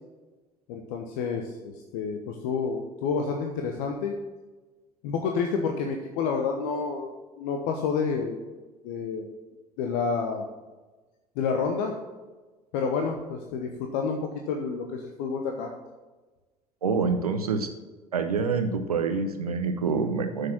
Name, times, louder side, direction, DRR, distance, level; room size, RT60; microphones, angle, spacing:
voice 1, 0.7-4.2 5.0-7.1 7.4-8.5 8.8-9.3 9.8-10.5 11.4-12.0 12.7-15.7, left 5 dB, 60° left, 3 dB, 1.0 m, -29 dB
voice 2, 16.8-17.7 18.1-20.5, right 5 dB, 80° right, 7 dB, 0.8 m, -26 dB
9.8 x 6.7 x 5.9 m, 1.2 s
figure-of-eight pair, 60°, 19 cm